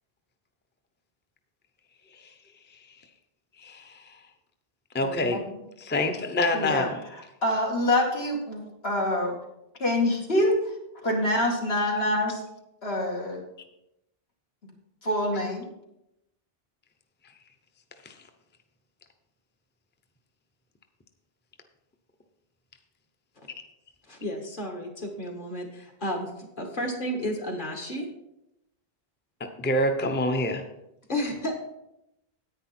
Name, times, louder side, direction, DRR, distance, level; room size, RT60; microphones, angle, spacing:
voice 1, 3.6-4.0 4.9-5.4 5.8-7.0 18.0-18.1 29.6-30.6, left 1 dB, 10° left, 5 dB, 0.7 m, -26 dB
voice 2, 5.0-5.4 6.5-6.9 7.4-9.4 9.8-10.6 11.0-12.4 12.8-13.4 15.0-15.6, left 1 dB, 75° left, -1 dB, 2.5 m, -26 dB
voice 3, 24.1-26.3 26.6-28.1 31.1-31.5, equal, 55° left, 2 dB, 1.9 m, -32 dB
10.0 x 9.0 x 4.3 m, 0.85 s
omnidirectional pair, 1.0 m